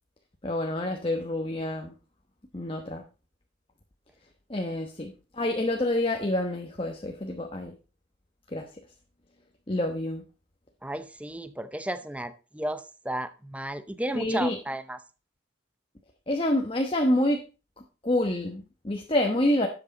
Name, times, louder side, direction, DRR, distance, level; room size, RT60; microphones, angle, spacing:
voice 1, 0.4-1.9 2.5-3.0 4.5-5.1 5.4-7.7 8.5-8.7 9.7-10.2 14.1-14.6 16.3-17.4 18.0-19.7, left 1 dB, 25° left, 1.1 m, -27 dB
voice 2, 10.8-15.0, right 1 dB, 5° right, 0.7 m, -33 dB
12.5 x 8.3 x 4.0 m
head